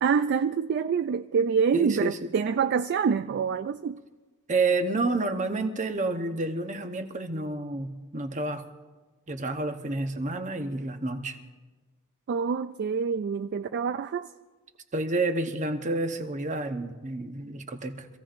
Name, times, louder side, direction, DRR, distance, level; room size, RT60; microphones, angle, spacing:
voice 1, 0.0-4.0 12.3-14.3, right 6 dB, 50° right, 0.3 m, -26 dB
voice 2, 1.7-2.3 4.5-8.6 9.3-11.4 14.9-18.1, right 2 dB, 35° right, 1.0 m, -29 dB
25.5 x 16.0 x 2.6 m
head